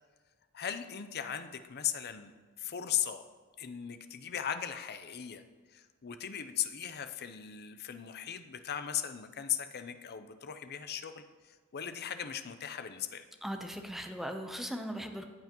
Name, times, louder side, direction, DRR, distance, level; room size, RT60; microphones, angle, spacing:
voice 1, 0.5-2.3 2.6-3.2 3.6-5.4 5.7-13.2, left 9 dB, 50° left, 9 dB, 0.6 m, -38 dB
voice 2, 13.4-15.3, equal, ahead, 5 dB, 0.7 m, -38 dB
14.5 x 8.2 x 3.0 m, 1.5 s
head